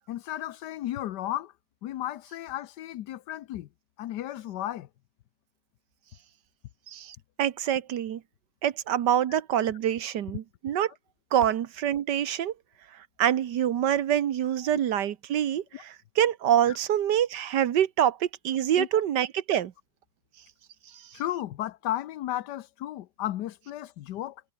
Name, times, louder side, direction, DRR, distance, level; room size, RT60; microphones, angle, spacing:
voice 1, 0.1-1.5 1.8-3.7 4.0-4.9 15.7-15.8 16.7-16.8 18.8-19.0 21.1-24.4, left 13 dB, 90° left, 1.4 m, -34 dB
voice 2, 6.9-8.2 8.6-10.9 11.3-12.5 13.2-19.7 20.9-21.0, right 10 dB, 90° right, 1.7 m, -26 dB
omnidirectional pair, 1.8 m